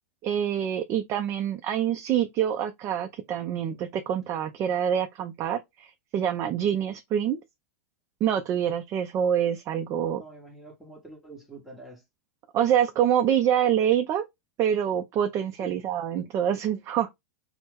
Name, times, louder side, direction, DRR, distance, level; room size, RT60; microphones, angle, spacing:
voice 1, 0.2-7.4 8.2-10.2 12.5-14.2 14.6-17.1, right 9 dB, 35° right, 0.4 m, -26 dB
voice 2, 10.1-12.0 15.6-15.8, right 2 dB, ahead, 1.1 m, -46 dB
2.7 x 2.0 x 3.5 m
hypercardioid pair, 110°, 9 cm